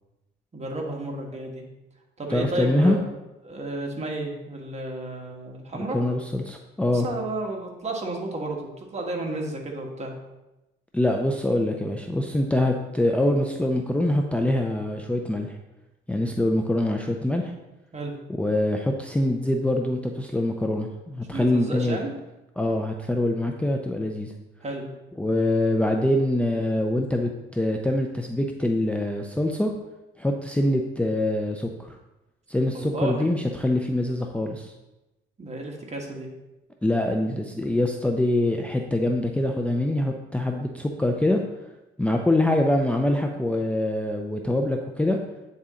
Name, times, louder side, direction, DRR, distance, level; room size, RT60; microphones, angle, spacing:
voice 1, 0.5-1.6 2.2-3.1 3.4-6.0 6.9-10.1 17.9-18.2 21.3-22.1 24.6-24.8 32.7-33.3 35.4-36.3, right 2 dB, 35° right, 0 dB, 1.5 m, -32 dB
voice 2, 2.3-3.0 5.7-7.1 10.9-15.6 16.1-17.5 18.4-22.0 22.6-24.3 25.2-29.7 30.2-32.0 32.5-34.7 36.8-41.4 42.0-45.2, left 1 dB, 5° left, 2 dB, 0.5 m, -24 dB
8.7 x 4.0 x 3.7 m, 1.0 s
cardioid pair, 90°, 20 cm